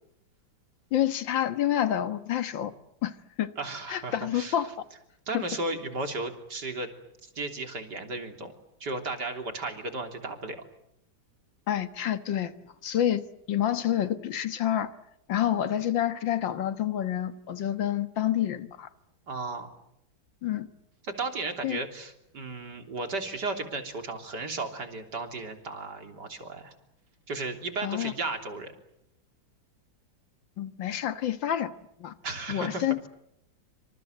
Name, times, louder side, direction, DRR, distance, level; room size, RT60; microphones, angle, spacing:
voice 1, 0.9-2.7 3.0-3.1 3.4-3.5 3.9-4.7 5.3-5.4 11.7-12.5 12.8-14.9 15.3-18.9 20.4-20.7 21.6-21.8 27.8-28.1 30.6-31.7 32.0-32.1 32.5-33.1, left 11 dB, 75° left, 2.1 m, -28 dB
voice 2, 3.6-4.6 5.3-6.9 7.2-8.5 8.8-10.6 19.3-19.7 21.0-26.7 27.3-28.7 32.2-32.8, right 3 dB, 60° right, 3.9 m, -34 dB
27.0 x 26.5 x 8.0 m
omnidirectional pair, 2.1 m